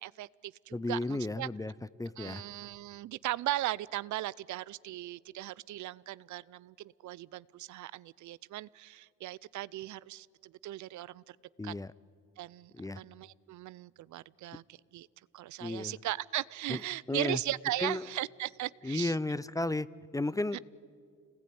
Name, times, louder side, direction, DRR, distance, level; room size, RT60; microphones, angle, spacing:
voice 1, 0.0-1.5 2.2-11.2 11.6-11.7 12.4-15.1 15.3-19.2 20.5-20.6, right 15 dB, 75° right, 21 dB, 0.6 m, -38 dB
voice 2, 0.7-1.7 2.0-2.4 11.6-11.9 12.7-13.0 15.6-16.0 16.7-16.8 17.1-17.4 17.8-18.0 18.8-19.9 20.1-20.6, left 2 dB, 10° left, 19 dB, 0.5 m, -33 dB
27.5 x 19.5 x 9.5 m, 2.3 s
cardioid pair, 90°, 30 cm